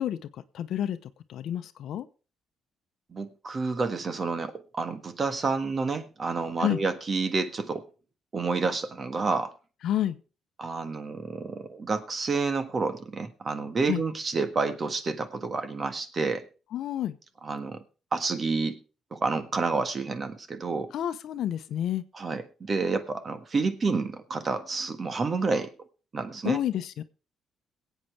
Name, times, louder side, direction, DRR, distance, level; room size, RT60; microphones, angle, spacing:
voice 1, 0.0-2.1 6.6-6.8 9.8-10.2 13.9-14.0 16.7-17.2 20.9-22.0 26.4-27.0, left 11 dB, 75° left, 12 dB, 0.8 m, -29 dB
voice 2, 3.1-7.8 8.3-9.5 10.6-16.4 17.4-17.8 18.1-18.8 19.1-20.9 22.1-25.7 26.1-26.6, right 4 dB, 40° right, 9 dB, 1.5 m, -29 dB
22.0 x 8.4 x 3.4 m, 0.36 s
cardioid pair, 90°, 0 cm